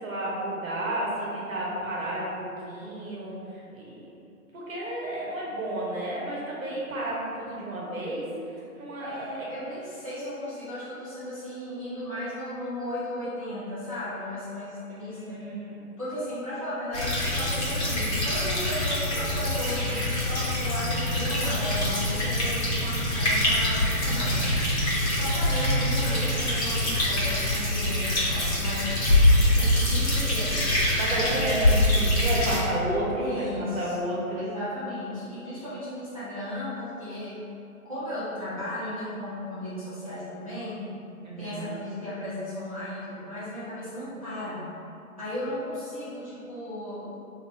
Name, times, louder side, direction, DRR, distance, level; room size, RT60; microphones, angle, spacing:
voice 1, 0.0-4.1 4.5-8.3 8.7-9.5 15.1-15.8 30.9-34.5 41.2-41.7, right 1 dB, 60° right, -5 dB, 1.1 m, -32 dB
voice 2, 9.0-15.4 16.0-24.4 25.1-28.9 29.5-30.6 33.2-37.4 37.8-40.9 41.4-44.7 45.2-47.2, left 1 dB, 25° right, -14 dB, 0.5 m, -35 dB
sound 1, 16.9-32.6, left 1 dB, 50° left, 1.1 m, -24 dB
2.7 x 2.4 x 4.2 m, 2.7 s
hypercardioid pair, 165°, 44 cm